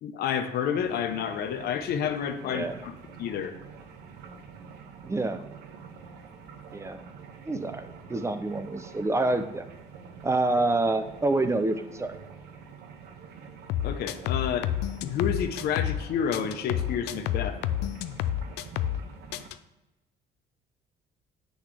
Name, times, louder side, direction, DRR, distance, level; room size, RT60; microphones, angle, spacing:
voice 1, 0.0-3.5 13.8-14.7 15.0-17.6, left 8 dB, 70° left, 8 dB, 0.8 m, -30 dB
sound 1, 0.8-19.5, right 6 dB, 80° right, 1.0 m, -46 dB
voice 2, 2.4-2.8 5.0-5.4 6.7-7.0 7.5-9.7 10.2-12.2, right 2 dB, 15° right, 9 dB, 0.5 m, -27 dB
sound 2, 13.7-16.0 16.3-19.0 19.3-19.6, left 11 dB, 90° left, 0.4 m, -29 dB
7.9 x 6.4 x 3.4 m, 1.0 s
cardioid pair, 110°, 17 cm